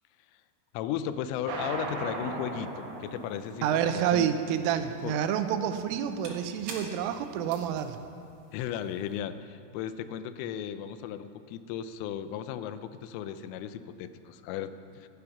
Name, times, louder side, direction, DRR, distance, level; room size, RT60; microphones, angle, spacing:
voice 1, 0.7-4.3 5.0-5.1 8.5-15.1, left 9 dB, 85° left, 11 dB, 3.2 m, -36 dB
sound 1, 1.5-9.0, right 3 dB, 60° right, 2.9 m, -39 dB
voice 2, 3.6-8.0, right 9 dB, 85° right, 9 dB, 3.3 m, -28 dB
17.0 x 10.5 x 5.9 m, 2.7 s
omnidirectional pair, 5.7 m